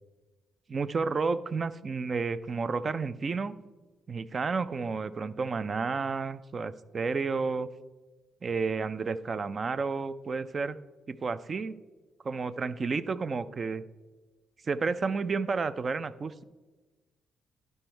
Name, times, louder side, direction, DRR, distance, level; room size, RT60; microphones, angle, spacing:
voice 1, 0.7-3.5 4.1-7.7 8.4-10.8 11.1-11.7 12.2-13.8 14.7-16.4, right 4 dB, 40° right, 14 dB, 0.4 m, -31 dB
11.5 x 5.3 x 4.5 m, 1.2 s
cardioid pair, 90°, 0 cm